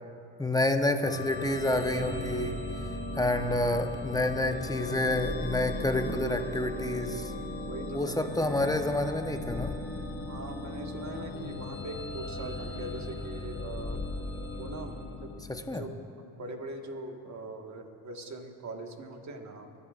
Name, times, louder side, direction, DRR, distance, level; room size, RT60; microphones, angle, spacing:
voice 1, 0.4-2.6 3.1-7.3 7.9-9.8 15.5-15.8, left 1 dB, 10° left, 6 dB, 1.0 m, -28 dB
sound 1, 1.0-15.7, left 2 dB, 25° left, 2.1 m, -37 dB
sound 2, 5.6-15.6, left 6 dB, 65° left, 2.1 m, -52 dB
voice 2, 7.7-8.7 10.3-14.0 14.6-19.7, right 2 dB, 40° right, 4 dB, 1.7 m, -42 dB
22.5 x 11.0 x 2.5 m, 2.6 s
supercardioid pair, 65°, 42 cm